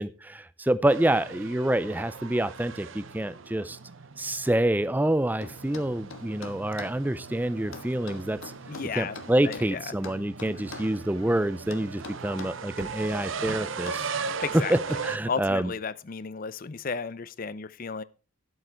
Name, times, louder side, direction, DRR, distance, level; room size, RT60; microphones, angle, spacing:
voice 1, 0.0-3.8 4.2-8.4 8.9-14.0 14.5-15.7, right 1 dB, 10° right, 0.4 m, -27 dB
sound 1, 0.9-15.2, right 5 dB, 70° right, 0.8 m, -38 dB
sound 2, 5.4-7.0 7.7-9.7 10.0-11.0 11.7-13.0 13.9-14.1, left 3 dB, 80° left, 1.5 m, -42 dB
voice 2, 8.7-9.2 9.4-9.9 14.4-14.7 15.3-18.0, left 5 dB, 45° left, 0.5 m, -33 dB
11.5 x 8.0 x 4.5 m
head